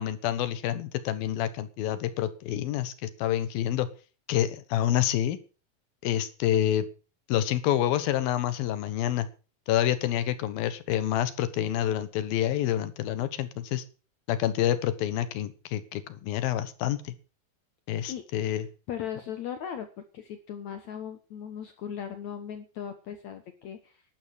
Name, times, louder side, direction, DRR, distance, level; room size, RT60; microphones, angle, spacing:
voice 1, 0.0-3.9 4.3-5.4 6.0-6.9 7.3-9.3 9.7-13.8 14.3-17.1 17.9-18.6, left 11 dB, 80° left, 14 dB, 3.0 m, -28 dB
voice 2, 18.9-24.0, left 9 dB, 60° left, 9 dB, 2.2 m, -38 dB
12.5 x 12.5 x 6.4 m, 0.35 s
omnidirectional pair, 4.2 m